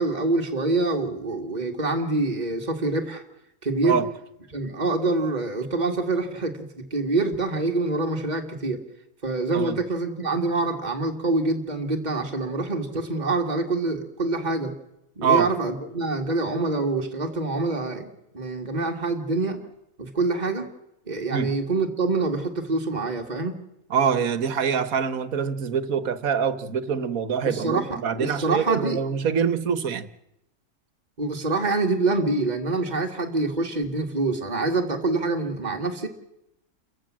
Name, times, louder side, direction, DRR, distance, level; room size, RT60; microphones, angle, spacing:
voice 1, 0.0-3.2 3.6-4.0 4.5-8.8 9.2-14.7 15.2-18.1 18.3-19.6 20.0-20.7 21.1-23.6 27.5-29.0 31.2-36.1, right 3 dB, 30° right, 2 dB, 2.4 m, -26 dB
voice 2, 23.9-30.1, right 7 dB, 75° right, 14 dB, 1.7 m, -25 dB
29.0 x 15.0 x 7.6 m, 0.84 s
omnidirectional pair, 1.5 m